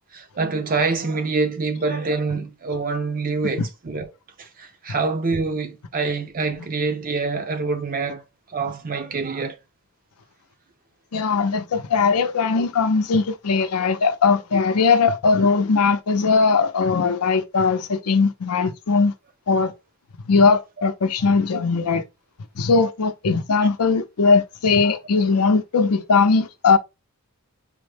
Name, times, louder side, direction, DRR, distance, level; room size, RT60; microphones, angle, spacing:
voice 1, 0.1-4.1 4.4-8.2 8.5-9.6, right 4 dB, 40° right, 0.6 m, -25 dB
voice 2, 11.1-19.1 19.5-19.7 20.3-22.0 22.6-26.8, left 4 dB, 85° left, 0.6 m, -19 dB
4.8 x 2.1 x 3.3 m
head